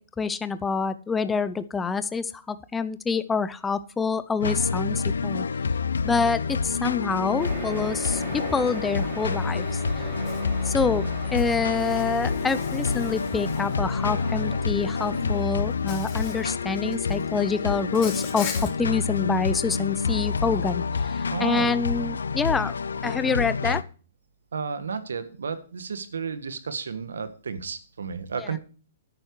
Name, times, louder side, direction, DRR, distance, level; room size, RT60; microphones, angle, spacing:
voice 1, 0.2-5.5 6.0-9.8 10.6-18.5 18.8-22.7 23.0-23.8 28.4-28.5, left 5 dB, 10° left, 13 dB, 0.6 m, -27 dB
sound 1, 4.4-23.8, left 5 dB, 90° left, 0.6 m, -28 dB
sound 2, 7.4-15.4, right 4 dB, 30° right, 3.4 m, -39 dB
Insect, 10.3-10.4 11.4-13.9 15.1-15.2 15.9-16.4 16.8-17.2 17.9-18.7, left 7 dB, 40° left, 3.5 m, -39 dB
voice 2, 21.3-21.7 24.5-28.6, right 5 dB, 85° right, 11 dB, 1.6 m, -32 dB
10.5 x 9.0 x 4.7 m, 0.38 s
hypercardioid pair, 135°, 0 cm